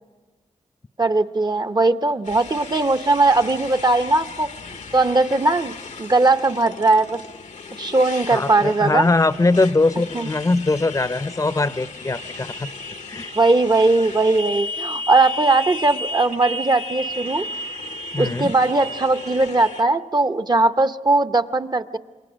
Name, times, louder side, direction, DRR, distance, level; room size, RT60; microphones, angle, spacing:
voice 1, 1.0-4.5 4.9-7.2 7.8-9.1 10.1-10.3 13.3-17.5 18.2-22.0, right 2 dB, 35° right, 9 dB, 0.8 m, -19 dB
Motorcycle, 2.3-19.8, left 2 dB, 75° left, 1.0 m, -35 dB
voice 2, 8.3-12.7 13.1-13.3 18.1-18.5, left 3 dB, 25° left, 15 dB, 0.7 m, -21 dB
27.0 x 22.0 x 6.3 m, 1.3 s
cardioid pair, 55°, 12 cm